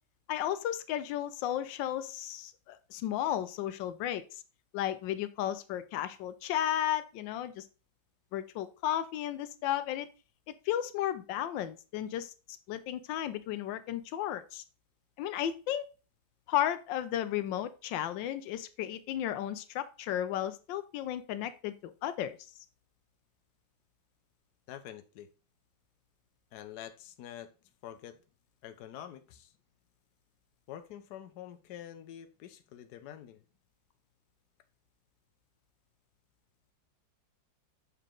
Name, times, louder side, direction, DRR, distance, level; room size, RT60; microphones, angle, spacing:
voice 1, 0.3-4.4 4.7-7.7 8.3-10.1 10.7-12.3 12.7-14.6 15.2-15.9 16.5-22.4, left 11 dB, 90° left, 12 dB, 1.3 m, -34 dB
voice 2, 24.7-25.3 26.5-27.5 27.8-28.2 28.6-29.5 30.7-33.4, left 11 dB, 70° left, 8 dB, 1.2 m, -46 dB
6.8 x 4.3 x 3.7 m, 0.33 s
omnidirectional pair, 2.0 m